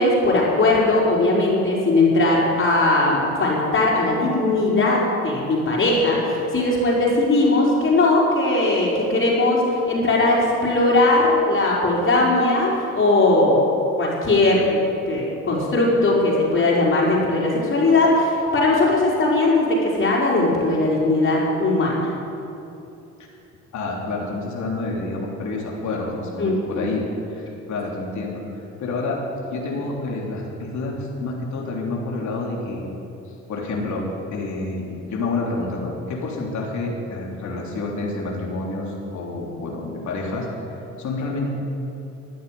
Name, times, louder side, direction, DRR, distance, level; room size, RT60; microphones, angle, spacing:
voice 1, 0.0-13.6 14.0-22.1 26.4-26.8, left 2 dB, 45° left, -4 dB, 4.7 m, -19 dB
voice 2, 23.7-27.0 27.3-29.2 29.5-32.8 33.5-34.0 34.3-40.7 41.0-41.5, left 3 dB, 70° left, -2 dB, 3.3 m, -28 dB
14.0 x 9.5 x 9.4 m, 2.8 s
cardioid pair, 90°, 30 cm